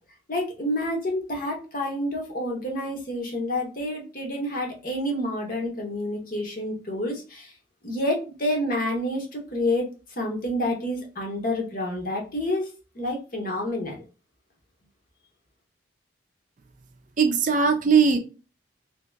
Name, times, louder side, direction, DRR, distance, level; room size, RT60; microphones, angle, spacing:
voice 1, 0.3-7.5 7.8-9.9 10.2-12.7 12.9-14.0, left 1 dB, 45° left, 1.0 m, -28 dB
voice 2, 17.2-18.2, right 5 dB, 40° right, 0.4 m, -19 dB
2.8 x 2.8 x 3.3 m
head